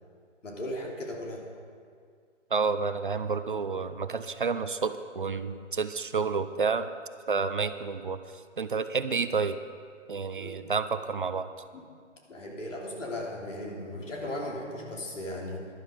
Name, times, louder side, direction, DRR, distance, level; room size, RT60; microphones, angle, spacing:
voice 1, 0.4-1.4 10.4-10.6 11.7-11.9 12.3-15.7, left 1 dB, 80° left, -1 dB, 3.1 m, -37 dB
voice 2, 2.5-6.9 7.3-8.2 8.6-9.6 10.1-11.5, right 5 dB, 45° right, 11 dB, 0.5 m, -29 dB
12.5 x 11.5 x 5.0 m, 2.1 s
hypercardioid pair, 160°, 37 cm